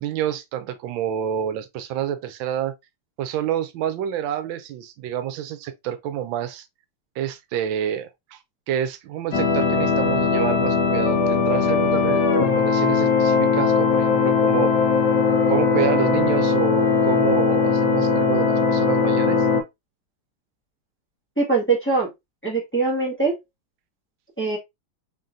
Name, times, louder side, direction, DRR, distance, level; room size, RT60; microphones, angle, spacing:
voice 1, 0.0-2.7 3.2-6.7 7.2-8.4 8.7-14.7 15.5-19.5, right 10 dB, 90° right, 1.4 m, -28 dB
sound 1, 9.3-19.6, left 5 dB, 65° left, 1.3 m, -19 dB
voice 2, 21.4-22.1 22.4-23.4 24.4-24.6, right 4 dB, 5° left, 1.3 m, -22 dB
3.7 x 3.7 x 2.6 m
omnidirectional pair, 2.1 m